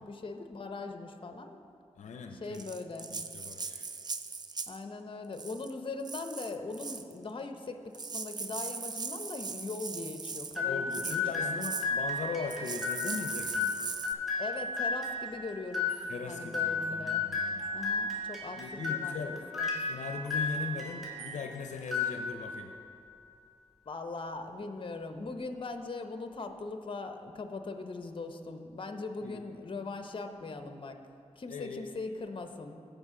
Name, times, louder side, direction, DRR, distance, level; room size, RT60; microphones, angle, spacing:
voice 1, 0.0-1.6 2.3-3.1 4.7-11.6 14.4-16.0 16.2-17.2 17.7-19.7 23.9-31.0 31.4-32.8, left 3 dB, 45° left, 6 dB, 0.7 m, -40 dB
voice 2, 2.0-2.7 3.0-3.9 10.6-13.7 16.1-17.6 18.6-19.4 19.9-22.7 29.2-29.4 31.5-31.8, left 5 dB, 85° left, 4 dB, 0.5 m, -39 dB
Rattle (instrument), 2.5-4.8 5.3-5.7 6.0-7.1 7.7-7.8 7.9-10.6 10.9-11.2 11.6-11.9 12.5-14.1, right 4 dB, 35° right, 0.4 m, -39 dB
sound 1, 10.5-21.4 21.8-22.6, left 4 dB, ahead, 2.2 m, -34 dB
15.0 x 5.0 x 3.7 m, 2.5 s
cardioid pair, 60°, 12 cm